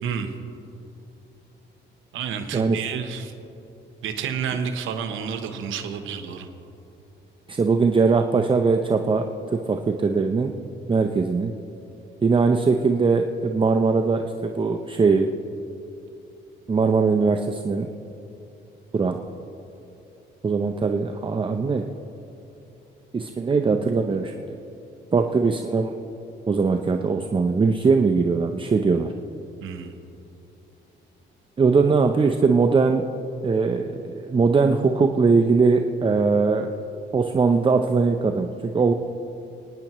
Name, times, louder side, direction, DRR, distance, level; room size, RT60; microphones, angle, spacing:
voice 1, 0.0-0.3 2.1-3.3 4.0-6.5 29.6-29.9, right 7 dB, 85° right, 6 dB, 1.0 m, -30 dB
voice 2, 7.5-10.5 10.9-11.5 12.2-15.3 16.7-17.9 18.9-19.2 20.4-21.9 23.1-24.3 25.1-25.9 26.5-29.1 31.6-33.0 33.4-36.7 37.1-38.9, right 4 dB, 25° right, 5 dB, 0.6 m, -21 dB
28.0 x 9.8 x 3.1 m, 2.8 s
cardioid pair, 90°, 20 cm